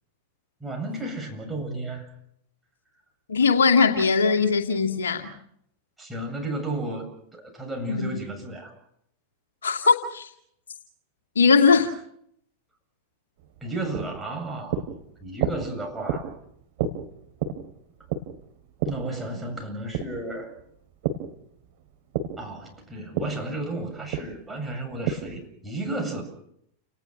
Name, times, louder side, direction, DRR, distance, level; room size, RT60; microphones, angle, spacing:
voice 1, 0.6-2.1 6.0-8.7 13.6-14.8 15.2-16.3 18.9-20.5 22.4-26.2, right 2 dB, 10° right, 1 dB, 7.9 m, -33 dB
voice 2, 3.3-5.3 7.9-8.1 9.6-10.3 11.4-11.9, left 5 dB, 70° left, 4 dB, 2.4 m, -20 dB
sound 1, 13.4-21.3 21.6-25.5, right 7 dB, 50° right, 3.5 m, -32 dB
30.0 x 19.5 x 6.1 m, 0.73 s
figure-of-eight pair, 90°, 0 cm